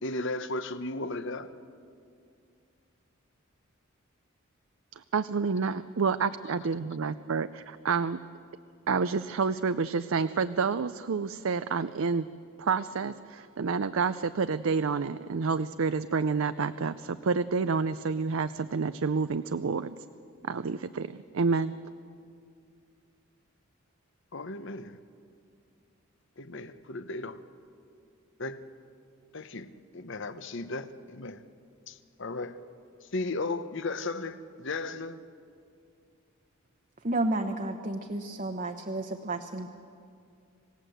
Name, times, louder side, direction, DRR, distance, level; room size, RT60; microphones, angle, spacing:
voice 1, 0.0-1.5 6.4-6.6 24.3-25.0 26.4-27.4 28.4-28.6 29.3-31.4 31.9-32.6 33.0-35.2, left 2 dB, 60° left, 12 dB, 1.0 m, -35 dB
voice 2, 4.9-8.2 8.9-12.3 12.6-20.0 20.5-21.1 21.3-21.7, right 5 dB, 70° right, 12 dB, 0.5 m, -29 dB
voice 3, 37.0-39.7, right 2 dB, 40° right, 4 dB, 1.0 m, -31 dB
27.0 x 17.5 x 7.9 m, 2.4 s
head